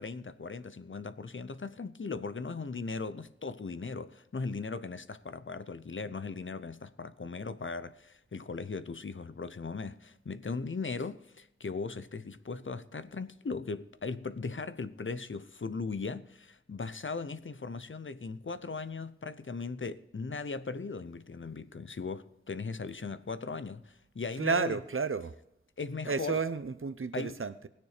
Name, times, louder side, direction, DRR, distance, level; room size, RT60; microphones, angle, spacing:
voice 1, 0.0-24.8 25.8-26.4 27.1-27.4, left 4 dB, 70° left, 0.7 m, -38 dB
voice 2, 24.4-25.3 26.1-27.7, right 4 dB, 85° right, 0.7 m, -31 dB
20.0 x 6.8 x 5.0 m
wide cardioid pair, 45°, 21 cm